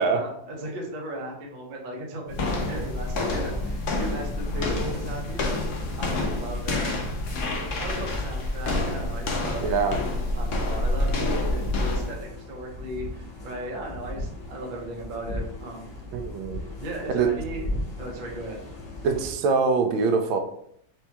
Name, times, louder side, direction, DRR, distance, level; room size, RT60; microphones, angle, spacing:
voice 1, 0.0-5.6 6.0-7.0 7.8-9.8 10.3-15.9 16.8-17.6 18.0-18.6, right 1 dB, 60° right, -1 dB, 0.5 m, -36 dB
sound 1, 2.3-12.2, left 2 dB, 75° left, 0.7 m, -28 dB
sound 2, 2.3-19.3, left 1 dB, 50° left, 1.1 m, -37 dB
voice 2, 9.6-10.0 16.1-16.6 17.1-17.3 19.0-20.4, right 5 dB, 90° right, 7 dB, 1.4 m, -23 dB
5.3 x 2.3 x 2.8 m, 0.70 s
omnidirectional pair, 2.1 m